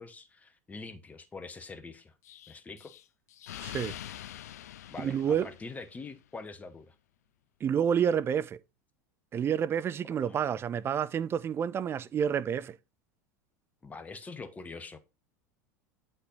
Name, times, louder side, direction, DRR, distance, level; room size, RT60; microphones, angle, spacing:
voice 1, 0.0-2.1 2.5-2.9 4.9-6.9 10.2-10.4 13.8-15.0, left 4 dB, 15° left, 0.9 m, -44 dB
Explosion, 2.2-6.1, left 12 dB, 70° left, 0.3 m, -45 dB
voice 2, 3.6-4.0 5.0-5.5 7.6-8.6 9.3-12.8, right 8 dB, 25° right, 0.5 m, -29 dB
7.9 x 5.6 x 3.9 m
figure-of-eight pair, 75°, 9 cm